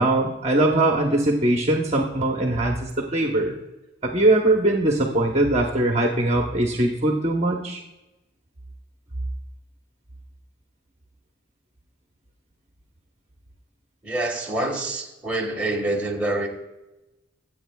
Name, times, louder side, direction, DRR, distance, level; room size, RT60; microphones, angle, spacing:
voice 1, 0.0-3.5 4.0-7.8, right 2 dB, 35° right, 1 dB, 1.0 m, -21 dB
voice 2, 14.0-16.5, right 2 dB, 10° right, -2 dB, 1.6 m, -26 dB
23.5 x 8.3 x 2.3 m, 1.0 s
head